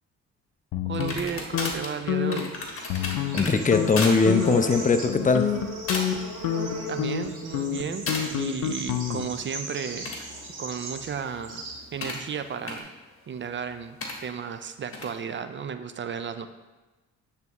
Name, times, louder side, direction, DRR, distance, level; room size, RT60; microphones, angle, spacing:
sound 1, 0.7-1.7 2.1-2.5 2.9-3.4 3.7-3.9 4.3-4.7 5.1-9.4, left 10 dB, 80° left, 0.5 m, -29 dB
voice 1, 0.8-2.5 6.9-10.3 10.6-12.9 13.3-16.5, right 7 dB, 40° right, 10 dB, 0.4 m, -34 dB
sound 2, 0.9-3.5 3.9-4.2 4.5-4.8 5.4-5.6 5.9-6.3 6.7-7.1 8.1-8.3 9.8-12.2 12.7-12.8 14.0-14.1 14.9-15.1, left 3 dB, 45° left, 1.3 m, -34 dB
Bird / Insect, 2.2-12.8, right 1 dB, 70° right, 1.9 m, -38 dB
voice 2, 3.3-5.5, left 4 dB, 25° left, 8 dB, 0.5 m, -21 dB
9.1 x 3.5 x 3.0 m, 1.2 s
supercardioid pair, 70°, 32 cm